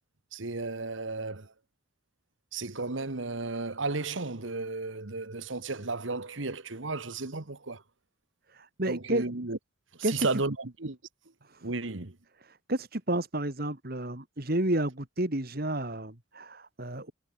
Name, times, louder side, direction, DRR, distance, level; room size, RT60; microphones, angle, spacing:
voice 1, 0.3-1.5 2.5-7.8 8.9-9.6 10.0-11.0 11.6-12.2, right 3 dB, 85° right, 1.7 m, -33 dB
voice 2, 8.5-9.3 10.0-10.4 11.5-11.7 12.4-17.1, right 1 dB, 50° right, 2.5 m, -31 dB
head